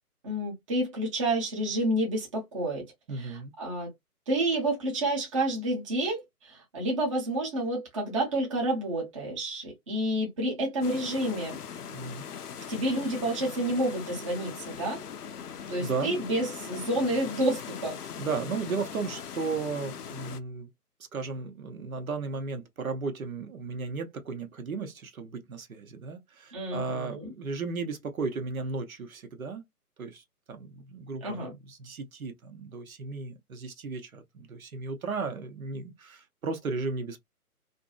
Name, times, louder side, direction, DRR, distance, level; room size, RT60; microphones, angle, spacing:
voice 1, 0.2-2.9 3.1-3.9 4.3-11.6 12.7-15.0 15.7-18.0 26.5-27.3 31.2-31.5, right 1 dB, 20° right, 0.8 m, -29 dB
voice 2, 3.1-3.5 11.9-12.3 15.8-16.1 18.2-20.7 21.1-29.6 30.0-37.2, right 4 dB, 65° right, 0.8 m, -35 dB
sound 1, 10.8-20.4, left 7 dB, 80° left, 0.6 m, -40 dB
2.6 x 2.6 x 2.3 m
figure-of-eight pair, 150°, 46 cm